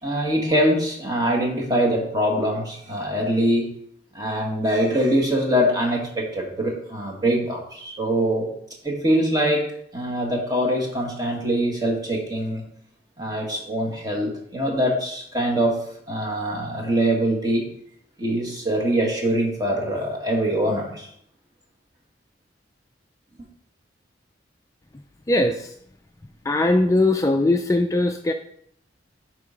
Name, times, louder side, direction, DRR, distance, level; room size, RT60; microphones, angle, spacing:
voice 1, 0.0-3.7 4.1-8.5 8.8-9.6 9.9-12.6 13.2-15.8 16.1-17.7 18.2-21.1, equal, 20° right, 0 dB, 1.6 m, -23 dB
voice 2, 25.3-25.7 26.4-28.3, left 2 dB, 15° left, 4 dB, 0.4 m, -20 dB
6.8 x 4.6 x 5.1 m, 0.69 s
head